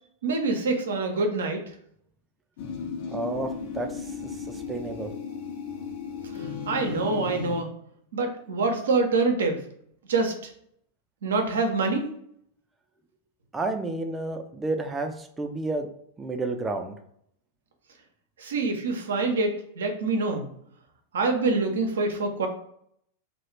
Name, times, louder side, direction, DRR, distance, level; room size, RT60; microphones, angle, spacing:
voice 1, 0.2-1.6 6.6-7.7 8.1-9.6 10.1-10.3 11.2-12.1 18.4-20.5 21.1-22.5, right 3 dB, 65° right, 4 dB, 0.5 m, -25 dB
sound 1, 2.6-7.6, left 6 dB, 55° left, 0.4 m, -35 dB
voice 2, 3.1-4.1 4.7-5.1 13.5-15.9 16.2-16.9, right 2 dB, 15° right, 5 dB, 0.4 m, -30 dB
2.3 x 2.1 x 3.0 m, 0.69 s
figure-of-eight pair, 90°, 0 cm